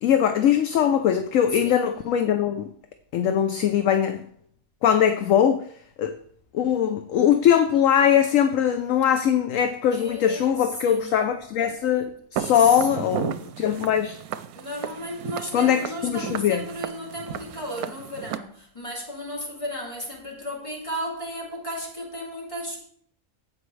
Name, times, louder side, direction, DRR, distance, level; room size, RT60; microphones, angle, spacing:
voice 1, 0.0-2.7 3.1-4.3 4.8-5.7 6.0-6.2 6.5-14.2 15.5-16.7, left 9 dB, 70° left, 8 dB, 1.0 m, -21 dB
voice 2, 9.9-11.2 12.4-13.0 14.5-22.8, equal, 20° left, -3 dB, 2.8 m, -34 dB
Walk footsteps, 12.4-18.4, right 10 dB, 90° right, 1.1 m, -34 dB
15.5 x 5.3 x 3.2 m, 0.63 s
omnidirectional pair, 1.5 m